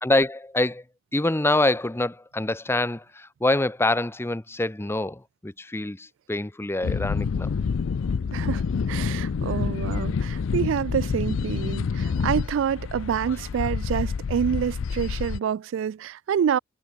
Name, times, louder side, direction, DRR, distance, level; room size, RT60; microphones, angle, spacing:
voice 1, 0.0-0.8 1.1-7.5, left 2 dB, 10° left, 0.7 m, -25 dB
sound 1, 6.8-15.4, left 5 dB, 85° left, 0.4 m, -28 dB
voice 2, 8.3-8.6 8.9-16.6, right 8 dB, 75° right, 0.3 m, -27 dB
head